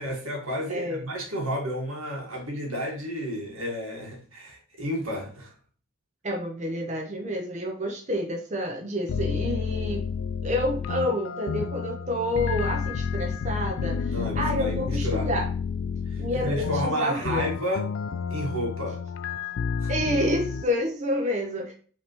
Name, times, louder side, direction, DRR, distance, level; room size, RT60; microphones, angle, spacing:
voice 1, 0.0-5.5 14.1-15.3 16.1-17.9 18.3-19.0 19.8-19.9, equal, 85° right, -1 dB, 1.7 m, -31 dB
voice 2, 0.7-1.0 6.2-10.0 10.4-15.5 16.2-17.5 19.9-21.7, equal, 35° right, 2 dB, 0.6 m, -29 dB
sound 1, 9.1-20.6, left 6 dB, 75° left, 0.3 m, -30 dB
5.4 x 3.4 x 2.9 m, 0.43 s
head